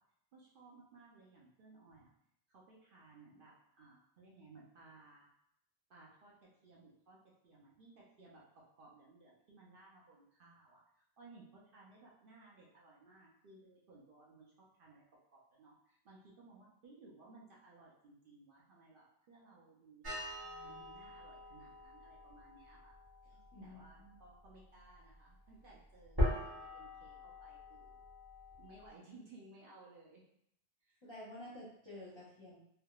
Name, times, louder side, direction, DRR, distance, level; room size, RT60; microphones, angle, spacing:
voice 1, 0.3-2.1 2.5-5.3 5.9-15.0 15.3-20.4 20.6-22.9 23.6-28.0 28.6-30.2 30.8-31.0, right 3 dB, 60° right, -4 dB, 0.7 m, -60 dB
sound 1, 20.0-28.9, left 1 dB, 20° right, 0.9 m, -42 dB
voice 2, 23.3-24.1 31.0-32.6, left 1 dB, 30° left, -8 dB, 0.6 m, -51 dB
3.4 x 2.0 x 2.3 m, 0.73 s
omnidirectional pair, 1.1 m